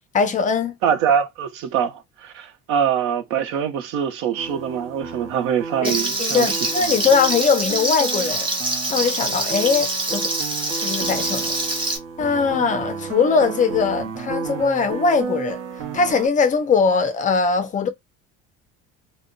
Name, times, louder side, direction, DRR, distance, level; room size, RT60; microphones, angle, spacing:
voice 1, 0.1-0.8 5.8-8.5 8.9-10.3 10.7-11.6 12.2-15.6 15.9-17.9, left 5 dB, 25° left, 0.4 m, -21 dB
voice 2, 0.8-6.7, right 8 dB, 80° right, 0.7 m, -24 dB
sound 1, 4.4-16.3, right 6 dB, 50° right, 0.9 m, -32 dB
Frying (food), 5.8-12.0, right 2 dB, 15° right, 0.7 m, -25 dB
2.1 x 2.1 x 3.7 m
cardioid pair, 150°, 32 cm